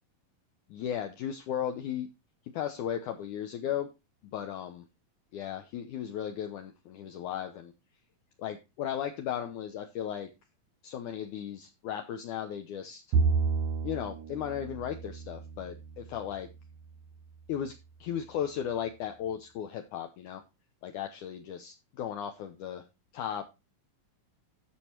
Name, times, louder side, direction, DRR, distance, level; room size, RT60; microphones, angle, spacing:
voice 1, 0.7-2.1 2.5-3.9 4.2-4.8 5.3-7.7 8.4-10.3 10.8-13.0 13.8-16.5 17.5-17.7 18.0-20.4 20.8-22.8 23.1-23.4, left 9 dB, 70° left, 5 dB, 2.2 m, -36 dB
Bowed string instrument, 13.1-16.6, right 5 dB, 75° right, 2.1 m, -31 dB
13.0 x 5.3 x 4.5 m, 0.26 s
omnidirectional pair, 4.0 m